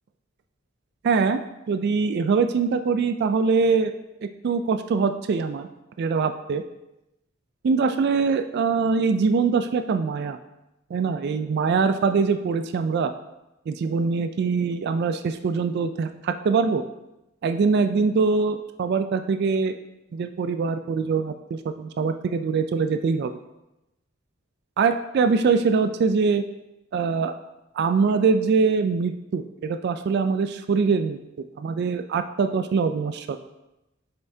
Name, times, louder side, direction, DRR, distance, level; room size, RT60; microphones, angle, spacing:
voice 1, 1.0-1.4 1.7-3.9 4.2-5.7 6.0-6.6 7.6-10.4 10.9-13.1 13.7-16.8 17.4-19.7 20.1-23.3 24.8-26.4 26.9-27.3 27.8-31.2 31.6-33.4, right 5 dB, 55° right, 9 dB, 0.3 m, -23 dB
7.8 x 5.5 x 2.7 m, 0.93 s
head